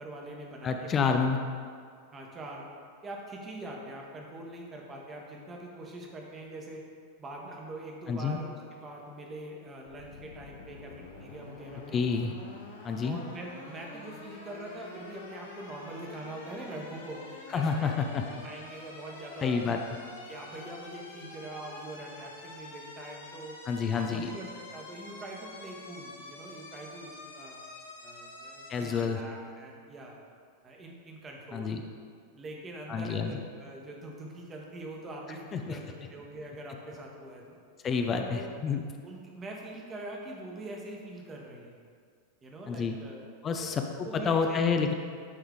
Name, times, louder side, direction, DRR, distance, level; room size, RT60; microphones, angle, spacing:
voice 1, 0.0-1.4 2.1-2.7 3.0-6.8 7.2-12.0 13.0-17.9 18.2-19.6 20.3-23.6 23.9-27.6 28.0-30.2 30.6-31.7 32.3-37.5 38.1-38.5 39.0-41.7 42.4-43.2 43.6-43.7 44.0-44.7, right 1 dB, 20° right, -1 dB, 1.1 m, -43 dB
voice 2, 0.6-1.4 8.1-8.4 11.9-12.3 12.8-13.2 17.5-18.2 19.4-19.8 23.7-24.3 28.7-29.2 31.5-31.8 32.9-33.4 35.5-35.8 37.8-38.8 42.7-42.9 43.4-44.9, left 5 dB, 25° left, 5 dB, 0.4 m, -29 dB
sound 1, 9.9-29.1, left 2 dB, 65° left, 0.9 m, -47 dB
9.5 x 3.5 x 3.6 m, 2.1 s
figure-of-eight pair, 90°, 0 cm